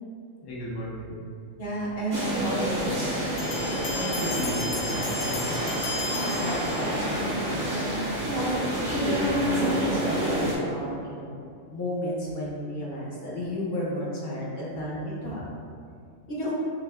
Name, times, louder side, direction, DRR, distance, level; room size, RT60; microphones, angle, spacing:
voice 1, 0.4-1.2 3.9-5.9, equal, 35° left, -6 dB, 0.4 m, -34 dB
voice 2, 1.6-3.1 4.1-4.5 5.4-5.7 6.4-7.7 8.3-15.4 16.3-16.5, equal, 50° left, -5 dB, 0.9 m, -33 dB
sound 1, 2.1-10.5, right 1 dB, 40° right, 1.0 m, -28 dB
sound 2, 3.4-7.2, left 3 dB, 90° left, 1.1 m, -35 dB
5.9 x 2.6 x 2.3 m, 2.3 s
omnidirectional pair, 1.4 m